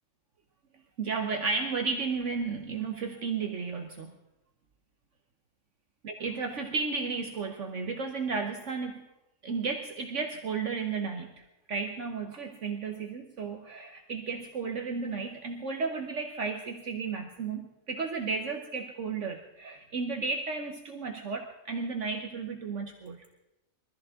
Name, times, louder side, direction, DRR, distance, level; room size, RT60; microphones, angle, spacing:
voice 1, 1.0-4.1 6.0-9.1 9.4-11.3 11.7-23.2, right 4 dB, 65° right, 3 dB, 1.3 m, -33 dB
23.0 x 14.0 x 3.7 m, 0.91 s
omnidirectional pair, 1.4 m